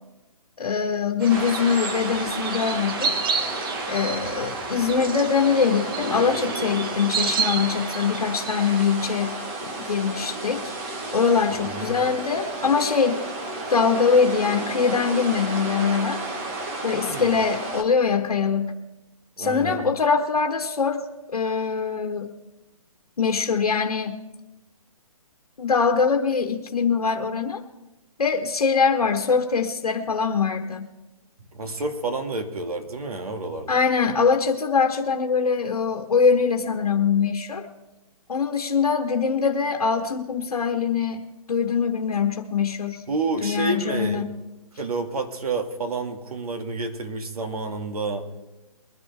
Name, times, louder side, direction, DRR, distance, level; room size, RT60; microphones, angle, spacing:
voice 1, 0.6-3.2 3.9-9.4 9.6-10.6 11.1-13.3 13.7-16.2 16.8-18.7 19.4-21.0 21.3-22.3 23.2-24.2 25.6-27.6 28.2-30.9 33.7-37.7 38.3-43.0 43.4-44.3, left 5 dB, 80° left, 4 dB, 1.3 m, -23 dB
sound 1, 1.2-8.9, right 5 dB, 40° right, 1.1 m, -31 dB
sound 2, 1.3-17.8, right 2 dB, 25° right, 1.4 m, -32 dB
voice 2, 11.5-11.9 17.1-17.3 19.4-19.8 31.5-33.8 43.1-44.3 44.8-48.3, right 3 dB, 80° right, 5 dB, 2.1 m, -29 dB
22.0 x 11.0 x 3.5 m, 1.0 s
hypercardioid pair, 160°, 19 cm